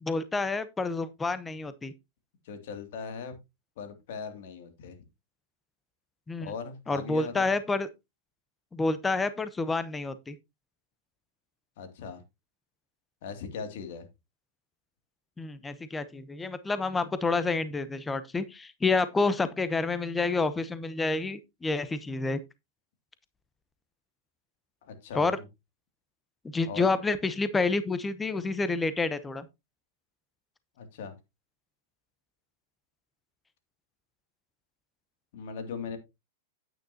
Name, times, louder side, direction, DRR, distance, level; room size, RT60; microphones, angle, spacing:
voice 1, 0.0-1.9 6.3-6.5 6.9-7.9 8.7-10.4 15.4-22.4 25.1-25.4 26.5-29.5, left 3 dB, 10° left, 0.8 m, -29 dB
voice 2, 2.4-3.4 3.8-5.0 6.4-7.5 11.8-12.2 13.2-14.1 24.8-25.4 26.7-26.9 30.8-31.1 35.3-36.0, left 6 dB, 65° left, 2.5 m, -39 dB
9.1 x 9.1 x 2.8 m
supercardioid pair, 140°, 0 cm